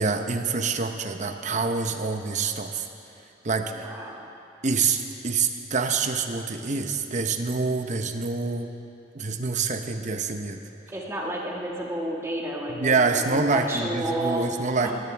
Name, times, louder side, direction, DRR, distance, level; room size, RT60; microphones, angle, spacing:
voice 1, 0.0-2.9 3.4-3.9 4.6-8.7 9.1-10.6 12.7-14.9, right 4 dB, 45° right, 6 dB, 0.8 m, -26 dB
voice 2, 3.7-4.3 10.9-14.5 14.8-14.9, right 1 dB, 15° right, -3 dB, 1.8 m, -31 dB
19.5 x 15.5 x 3.5 m, 2.9 s
head